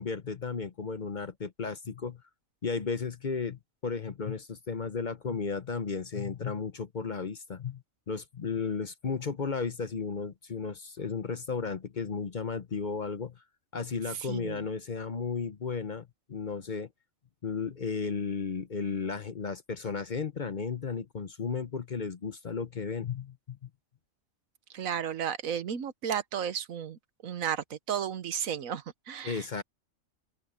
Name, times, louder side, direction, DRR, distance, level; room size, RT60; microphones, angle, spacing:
voice 1, 0.0-2.2 2.6-13.4 13.7-16.9 17.4-23.7 29.2-29.6, left 5 dB, 40° left, 0.9 m, -34 dB
voice 2, 14.1-14.6 24.7-29.6, right 8 dB, 85° right, 1.4 m, -34 dB
open air
omnidirectional pair, 1.4 m